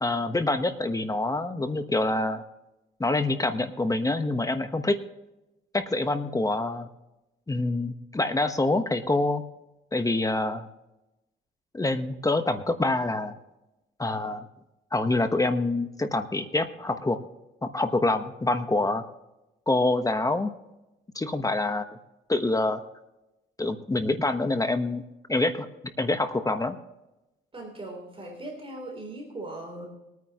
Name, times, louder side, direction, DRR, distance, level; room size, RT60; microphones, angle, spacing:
voice 1, 0.0-2.4 3.0-5.0 5.7-6.9 7.5-9.4 9.9-10.7 11.7-13.3 14.0-14.4 14.9-17.2 17.6-19.0 19.7-20.5 21.1-21.9 22.3-22.8 23.6-25.0 25.3-25.7 26.0-26.8, left 2 dB, 15° left, 8 dB, 1.1 m, -26 dB
voice 2, 27.5-29.9, right 2 dB, 25° right, 1 dB, 3.3 m, -39 dB
22.0 x 9.4 x 3.0 m, 0.96 s
cardioid pair, 90°, 20 cm